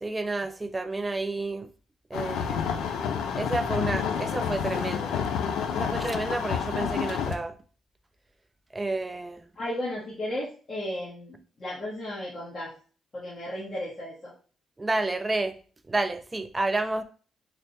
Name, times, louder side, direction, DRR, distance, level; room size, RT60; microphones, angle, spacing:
voice 1, 0.0-1.7 2.1-2.8 3.4-5.2 5.7-7.5 8.7-9.4 14.8-15.6 15.9-17.0, right 2 dB, 15° right, 0.4 m, -30 dB
sound 1, 2.1-7.3, left 7 dB, 85° left, 0.4 m, -29 dB
voice 2, 9.5-12.7 13.1-14.3, left 1 dB, 30° left, 1.1 m, -34 dB
3.3 x 2.2 x 3.9 m
cardioid pair, 125°, 0 cm